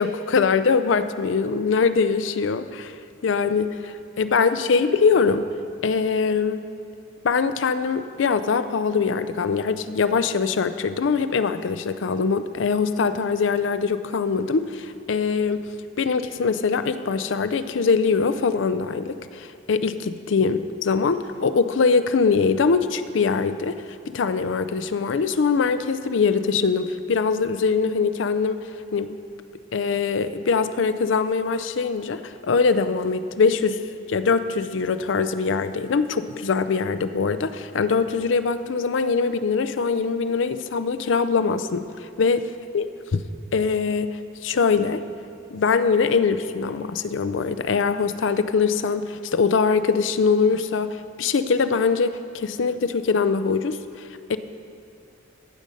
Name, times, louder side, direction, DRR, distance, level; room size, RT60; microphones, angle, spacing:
voice 1, 0.0-2.9 3.2-5.5 5.8-6.6 7.2-15.6 16.0-23.8 24.1-29.2 29.7-33.8 34.1-42.9 43.1-43.2 43.5-45.0 45.5-54.4, left 5 dB, 85° left, 12 dB, 0.5 m, -22 dB
14.5 x 6.3 x 5.3 m, 2.6 s
head